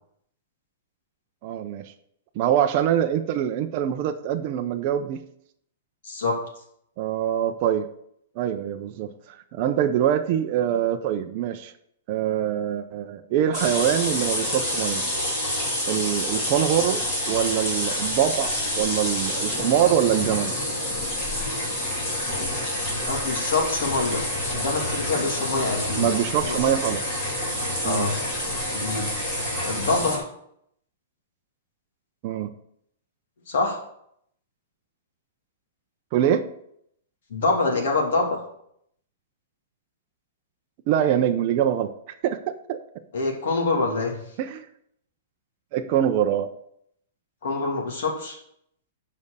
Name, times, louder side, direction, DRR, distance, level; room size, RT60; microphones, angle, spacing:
voice 1, 1.4-1.9 2.4-5.2 7.0-7.9 8.4-11.7 12.1-15.0 15.9-20.5 26.0-27.0 27.8-28.1 32.2-32.5 36.1-36.4 40.9-41.9 42.2-42.8 44.4-44.7 45.7-46.5, right 10 dB, 30° right, 5 dB, 0.5 m, -24 dB
voice 2, 6.0-6.4 23.1-24.2 24.5-26.1 26.4-26.7 27.8-28.2 28.6-29.1 29.6-30.3 33.5-33.8 37.3-38.4 43.1-44.2 47.4-48.4, left 3 dB, 60° left, 0 dB, 2.7 m, -25 dB
sound 1, 13.5-30.2, left 1 dB, 25° left, 2.5 m, -28 dB
7.5 x 5.3 x 6.7 m, 0.70 s
supercardioid pair, 180°, 0 cm